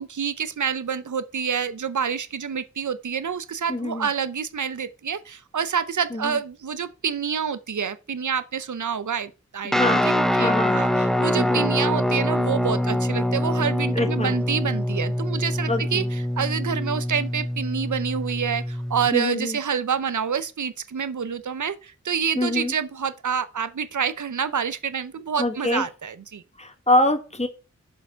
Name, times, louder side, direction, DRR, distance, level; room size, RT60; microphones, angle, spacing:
voice 1, 0.0-26.4, right 7 dB, 90° right, 0.7 m, -28 dB
voice 2, 3.7-4.1 6.1-6.4 9.6-10.1 10.4-10.8 11.3-11.7 13.9-14.3 15.7-16.1 19.1-19.6 22.3-22.7 25.4-25.8 26.6-27.5, left 1 dB, 20° left, 1.6 m, -24 dB
Guitar, 9.7-19.1, left 1 dB, ahead, 0.7 m, -24 dB
6.9 x 6.7 x 4.5 m
wide cardioid pair, 70°, 29 cm